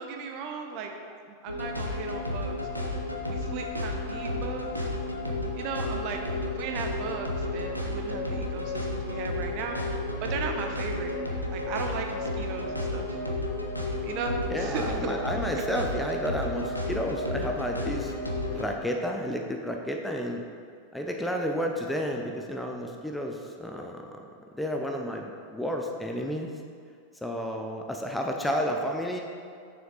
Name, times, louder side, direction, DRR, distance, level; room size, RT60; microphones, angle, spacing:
voice 1, 0.0-2.9 3.2-4.9 5.5-11.1 11.5-13.2 14.0-15.1, right 5 dB, 45° right, 3 dB, 0.8 m, -36 dB
sound 1, 1.5-18.7, left 1 dB, 85° left, 0.8 m, -32 dB
voice 2, 14.5-18.1 18.5-20.4 20.9-24.2 24.5-26.5 27.2-29.2, equal, 5° left, 2 dB, 0.6 m, -31 dB
6.6 x 6.6 x 4.0 m, 2.3 s
figure-of-eight pair, 90°, 0 cm